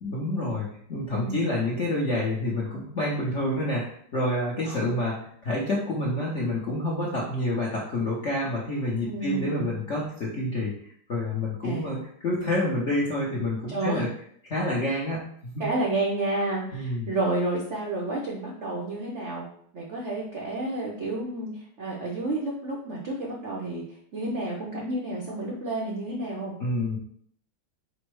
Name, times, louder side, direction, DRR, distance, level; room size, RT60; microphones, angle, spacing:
voice 1, 0.0-10.7 11.1-14.1 14.4-15.6 16.7-17.1 26.6-27.0, left 1 dB, 60° left, -5 dB, 0.7 m, -28 dB
voice 2, 1.1-1.4 4.6-4.9 9.0-9.8 11.6-11.9 13.7-14.0 14.9-15.0 15.6-19.5 19.7-21.5 21.8-23.8 24.1-26.5, right 2 dB, 70° right, -3 dB, 0.6 m, -30 dB
5.2 x 2.1 x 4.6 m, 0.62 s
omnidirectional pair, 2.3 m